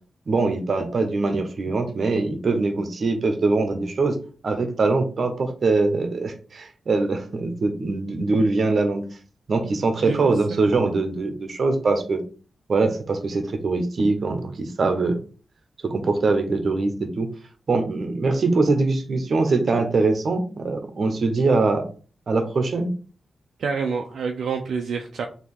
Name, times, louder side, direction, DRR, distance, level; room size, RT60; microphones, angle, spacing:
voice 1, 0.3-4.2 4.4-9.0 9.5-12.2 12.7-15.2 15.8-17.3 17.7-21.9 22.3-22.9, right 3 dB, 60° right, 6 dB, 0.9 m, -22 dB
voice 2, 10.0-10.7 23.6-25.3, right 5 dB, 85° right, 3 dB, 0.5 m, -28 dB
3.5 x 2.9 x 4.4 m, 0.39 s
cardioid pair, 70°, 0 cm